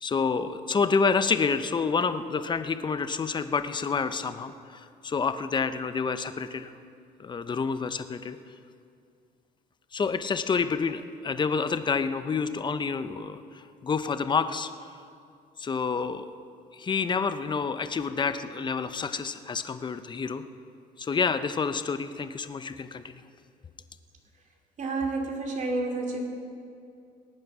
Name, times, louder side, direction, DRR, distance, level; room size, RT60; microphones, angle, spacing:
voice 1, 0.0-6.7 7.2-8.4 9.9-14.7 15.6-16.3 16.7-20.4 21.0-23.2, left 5 dB, 25° left, 11 dB, 0.7 m, -28 dB
voice 2, 24.8-26.2, right 3 dB, 45° right, 2 dB, 2.7 m, -30 dB
20.0 x 9.1 x 6.1 m, 2.4 s
cardioid pair, 110°, 17 cm